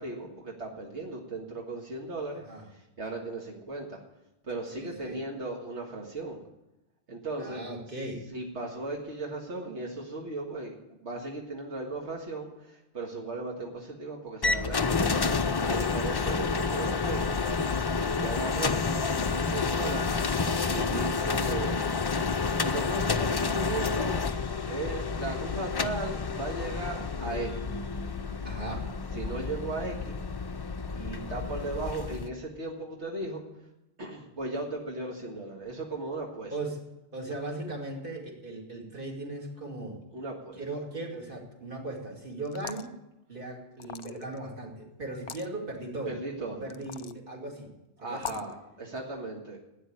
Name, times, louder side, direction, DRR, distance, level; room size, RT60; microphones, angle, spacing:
voice 1, 0.0-2.4 2.7-4.0 4.4-6.4 7.1-7.6 8.3-10.7 11.0-15.0 15.6-22.2 22.6-24.3 24.7-27.7 29.1-30.2 30.9-33.4 34.0-36.5 40.1-40.6 46.0-46.7 48.0-49.6, right 2 dB, 80° right, 0 dB, 2.1 m, -36 dB
voice 2, 4.7-5.2 7.4-8.3 28.4-28.9 36.5-36.8 37.1-40.0 40.6-42.9 43.3-46.2 46.4-47.7 48.0-48.3, right 2 dB, 50° right, 0 dB, 2.6 m, -38 dB
sound 1, 14.4-32.3, left 4 dB, 40° left, 0.3 m, -29 dB
sound 2, 42.5-42.9 43.8-44.4 45.1-45.5 46.7-47.2 48.2-48.5, left 8 dB, 60° left, 0.8 m, -40 dB
12.5 x 9.3 x 9.7 m, 0.94 s
omnidirectional pair, 1.2 m